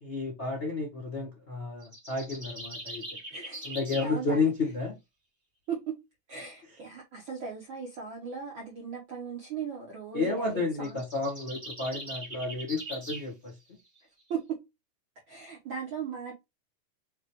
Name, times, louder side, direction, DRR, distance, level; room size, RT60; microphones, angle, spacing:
voice 1, 0.0-3.0 3.6-4.9 10.1-13.5, left 3 dB, 75° left, 0.6 m, -31 dB
sound 1, 1.8-4.1 10.7-13.3, right 1 dB, 30° right, 0.7 m, -41 dB
voice 2, 3.3-4.4 5.7-5.9 6.3-11.0 14.3-14.6 15.3-16.4, right 6 dB, 75° right, 1.1 m, -38 dB
6.4 x 2.2 x 3.0 m
omnidirectional pair, 3.7 m